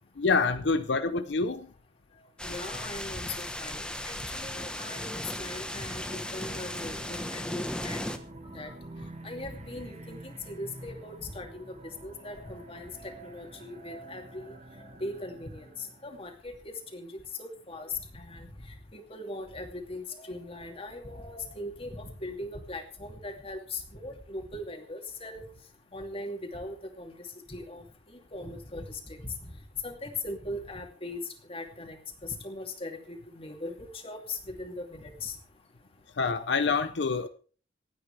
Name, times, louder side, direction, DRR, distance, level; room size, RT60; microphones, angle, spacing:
voice 1, 0.2-1.7 36.2-37.3, left 4 dB, 80° left, 11 dB, 0.7 m, -26 dB
voice 2, 2.4-8.0 8.5-8.7 9.2-11.6 12.0-15.7 16.0-17.1 17.4-18.5 18.9-25.4 25.9-27.1 27.5-29.3 29.8-31.2 31.5-35.3, left 2 dB, 35° left, 3 dB, 2.7 m, -40 dB
sound 1, 2.4-8.2, left 1 dB, 5° left, 1.2 m, -36 dB
sound 2, 5.7-16.3, right 1 dB, 45° right, 1.7 m, -48 dB
27.0 x 9.4 x 3.4 m, 0.41 s
head